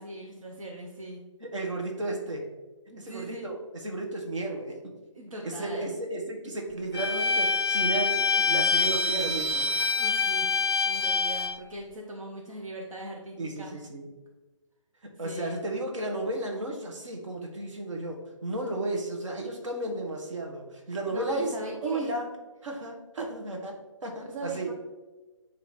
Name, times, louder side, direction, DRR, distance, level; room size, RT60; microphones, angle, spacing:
voice 1, 0.0-1.2 2.9-3.5 5.1-5.9 10.0-10.5 10.8-13.8 15.1-15.6 20.9-22.1 24.3-24.7, right 2 dB, 85° right, -1 dB, 1.2 m, -40 dB
voice 2, 1.4-2.4 3.0-3.6 3.8-4.8 5.4-9.7 13.4-14.1 15.0-21.5 21.8-22.3 22.6-24.7, right 2 dB, 65° right, 1 dB, 1.6 m, -33 dB
Bowed string instrument, 6.9-11.6, left 4 dB, 50° left, 0.4 m, -26 dB
9.0 x 3.2 x 4.4 m, 1.2 s
hypercardioid pair, 180°, 17 cm